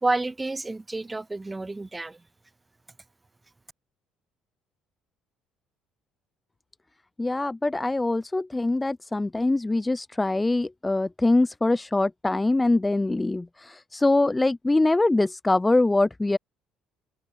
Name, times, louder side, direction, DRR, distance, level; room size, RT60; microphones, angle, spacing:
voice 1, 0.0-2.2, right 2 dB, 10° right, 1.0 m, -29 dB
voice 2, 7.2-16.4, left 2 dB, 10° left, 0.4 m, -23 dB
cardioid pair, 170°, 0 cm